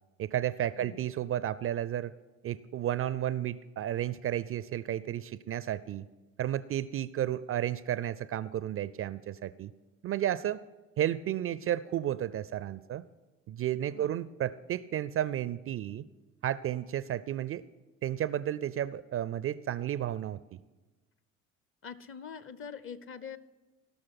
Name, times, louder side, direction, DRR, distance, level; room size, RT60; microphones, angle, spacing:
voice 1, 0.2-2.1 2.4-6.1 6.4-9.7 10.0-10.6 11.0-13.0 13.5-16.0 16.4-17.6 18.0-20.4, right 11 dB, 35° right, 17 dB, 0.4 m, -32 dB
voice 2, 13.9-14.2 21.8-23.4, left 6 dB, 35° left, 16 dB, 0.7 m, -44 dB
17.0 x 6.3 x 5.9 m, 1.2 s
figure-of-eight pair, 55°, 39 cm